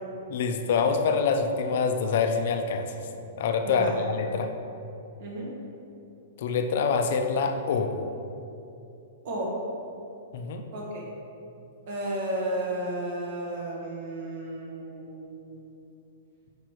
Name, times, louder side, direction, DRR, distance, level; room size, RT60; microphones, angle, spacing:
voice 1, 0.3-2.9 3.4-4.5 6.4-7.9 10.3-10.6, left 5 dB, 45° left, 6 dB, 0.4 m, -25 dB
voice 2, 3.6-3.9 5.2-5.5 9.2-9.5 10.7-11.0 11.9-15.5, right 1 dB, 45° right, -3 dB, 1.4 m, -33 dB
5.0 x 4.5 x 4.7 m, 2.7 s
hypercardioid pair, 175°, 0 cm